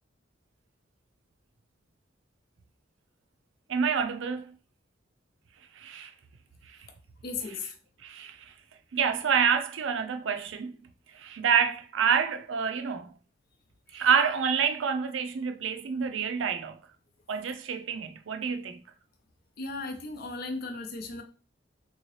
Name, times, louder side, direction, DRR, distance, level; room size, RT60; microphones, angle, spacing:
voice 1, 3.7-4.5 5.8-6.1 6.7-6.8 7.5-7.6 8.0-8.5 8.9-10.7 11.1-13.1 13.9-16.8 17.3-18.8, right 6 dB, 80° right, 0.5 m, -28 dB
voice 2, 7.2-7.7 13.9-14.0 19.6-21.2, left 3 dB, 55° left, 0.5 m, -36 dB
3.7 x 2.7 x 3.1 m
head